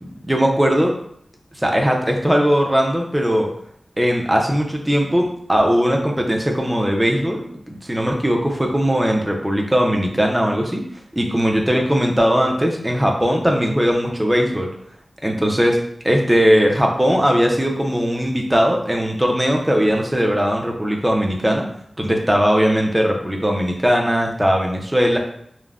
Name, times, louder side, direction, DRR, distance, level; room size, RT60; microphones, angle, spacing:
voice 1, 0.0-1.0 1.6-3.5 4.0-7.4 7.7-10.8 11.2-14.7 15.2-21.6 22.0-25.2, equal, 10° right, 1 dB, 0.5 m, -19 dB
3.3 x 2.1 x 2.4 m, 0.69 s
wide cardioid pair, 100°, 0 cm